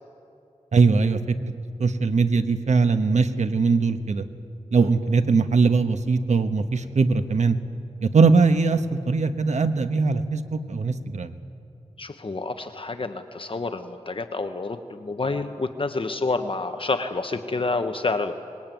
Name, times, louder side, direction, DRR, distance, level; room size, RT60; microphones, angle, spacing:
voice 1, 0.7-1.5 1.8-4.2 4.7-7.6 8.0-11.3, right 4 dB, 85° right, 8 dB, 1.2 m, -21 dB
voice 2, 12.0-18.3, left 3 dB, 50° left, 7 dB, 1.1 m, -28 dB
24.0 x 21.0 x 9.2 m, 2.6 s
wide cardioid pair, 85°, 12 cm